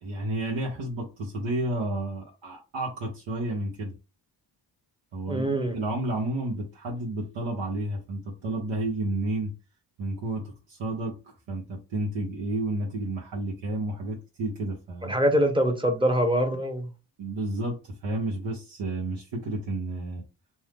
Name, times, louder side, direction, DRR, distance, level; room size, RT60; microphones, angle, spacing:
voice 1, 0.0-3.9 5.1-9.5 10.0-11.1 11.5-15.2 17.2-20.2, right 2 dB, 70° right, 0.9 m, -31 dB
voice 2, 5.3-5.8 15.0-16.9, equal, 10° right, 0.8 m, -24 dB
2.6 x 2.0 x 3.3 m
cardioid pair, 55°, 47 cm